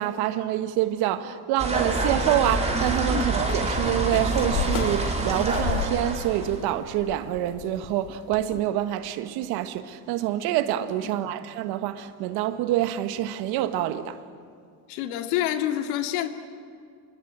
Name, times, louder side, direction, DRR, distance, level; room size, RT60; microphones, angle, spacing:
voice 1, 0.0-14.2, right 12 dB, 60° right, 1.6 m, -26 dB
sound 1, 1.6-6.6, right 2 dB, 15° right, 4.9 m, -26 dB
sound 2, 3.5-8.6, left 9 dB, 55° left, 2.5 m, -33 dB
voice 2, 14.9-16.3, left 12 dB, 70° left, 2.5 m, -27 dB
26.0 x 22.5 x 9.0 m
supercardioid pair, 110°, 42 cm